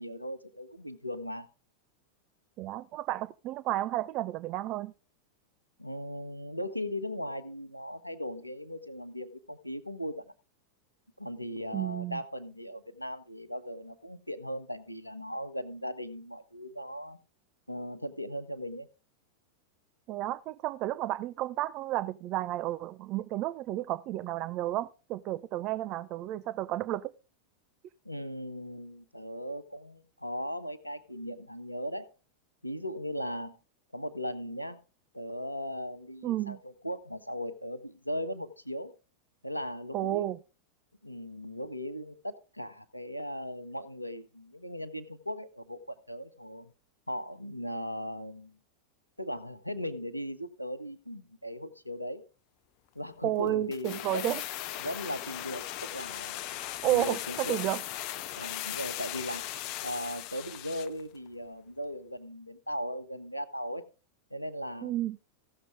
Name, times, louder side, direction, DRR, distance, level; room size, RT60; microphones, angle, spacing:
voice 1, 0.0-1.5 5.8-10.2 11.2-17.2 17.7-18.9 28.0-32.1 32.6-33.6 33.9-34.8 35.1-38.9 39.4-40.2 41.0-46.7 47.1-48.6 49.2-52.2 52.9-54.4 54.8-56.4 56.8-57.6 58.3-59.5 59.8-63.8 64.3-64.9, equal, 90° left, 0.9 m, -38 dB
voice 2, 2.6-4.9 11.7-12.2 20.1-27.1 36.2-36.6 39.9-40.4 53.2-54.4 56.8-57.8 64.8-65.2, right 14 dB, 40° right, 0.5 m, -32 dB
sound 1, 53.7-61.0 61.3-61.4, left 13 dB, 45° left, 0.5 m, -38 dB
15.5 x 6.7 x 3.6 m
figure-of-eight pair, 90°, 0 cm